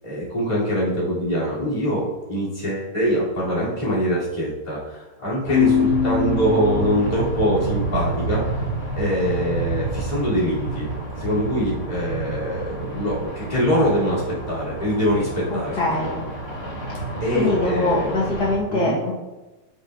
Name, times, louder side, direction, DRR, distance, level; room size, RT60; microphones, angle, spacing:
voice 1, 0.0-8.5 8.9-10.9 11.2-16.1 17.2-18.1 18.7-19.0, equal, 20° left, -7 dB, 3.0 m, -23 dB
sound 1, 5.4-18.6, right 3 dB, 50° left, 2.5 m, -29 dB
Keyboard (musical), 5.5-7.3, left 9 dB, 85° left, 1.6 m, -22 dB
voice 2, 15.5-16.2 17.3-19.1, left 2 dB, 65° left, -5 dB, 1.9 m, -23 dB
14.5 x 5.6 x 2.5 m, 1.1 s
omnidirectional pair, 1.9 m